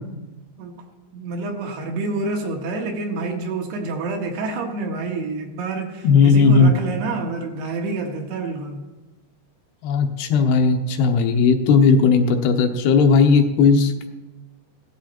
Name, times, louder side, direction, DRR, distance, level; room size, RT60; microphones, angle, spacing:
voice 1, 1.1-8.9, right 3 dB, 75° right, 2 dB, 3.5 m, -28 dB
voice 2, 6.0-6.7 9.8-14.1, left 5 dB, 75° left, 5 dB, 2.8 m, -16 dB
16.5 x 13.0 x 4.4 m, 1.1 s
omnidirectional pair, 4.8 m